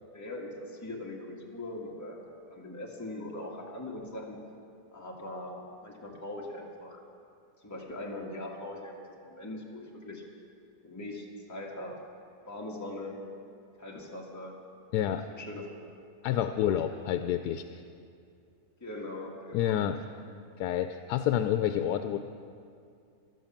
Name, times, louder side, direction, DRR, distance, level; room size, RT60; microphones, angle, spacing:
voice 1, 0.1-4.4 4.9-7.0 7.6-10.2 10.8-12.0 12.4-13.2 13.8-14.5 15.3-15.9 16.6-17.0 18.8-19.8, left 1 dB, 10° left, -2 dB, 1.7 m, -41 dB
voice 2, 14.9-15.2 16.2-17.8 19.5-20.0 20.6-22.2, left 11 dB, 85° left, 8 dB, 1.1 m, -28 dB
14.0 x 12.0 x 7.3 m, 2.4 s
omnidirectional pair, 1.7 m